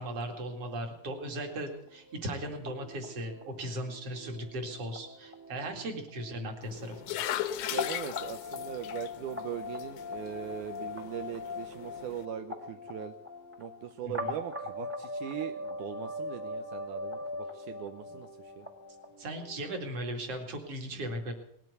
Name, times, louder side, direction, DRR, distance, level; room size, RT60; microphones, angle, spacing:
voice 1, 0.0-7.2 14.0-14.3 19.2-21.3, right 1 dB, 50° right, 4 dB, 3.1 m, -37 dB
sound 1, 1.1-19.8, left 2 dB, 10° right, 0.9 m, -41 dB
sound 2, 6.6-12.3, left 13 dB, 85° left, 2.3 m, -39 dB
voice 2, 7.7-13.1 13.6-18.3 18.6-18.7, right 10 dB, 80° right, 7 dB, 2.2 m, -40 dB
19.5 x 9.0 x 8.0 m, 0.69 s
omnidirectional pair, 3.5 m